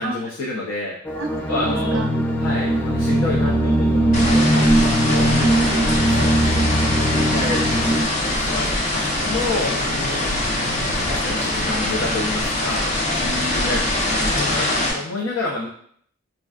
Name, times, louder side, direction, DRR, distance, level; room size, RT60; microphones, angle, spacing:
voice 1, 0.0-1.0 1.5-2.0 2.4-5.3 6.0-6.6 6.9-7.6 8.2-8.7 9.2-10.2 10.9-12.8 13.5-15.7, left 2 dB, 85° left, -3 dB, 0.6 m, -28 dB
sound 1, 1.0-8.0, right 1 dB, 10° left, 0.3 m, -20 dB
voice 2, 1.1-2.2 5.2-5.9 13.1-13.9, right 2 dB, 80° right, 5 dB, 0.5 m, -31 dB
sound 2, 4.1-14.9, left 1 dB, 40° left, 0.7 m, -23 dB
Run, 7.4-13.5, equal, 65° left, 1.0 m, -35 dB
4.2 x 2.5 x 2.4 m, 0.63 s
head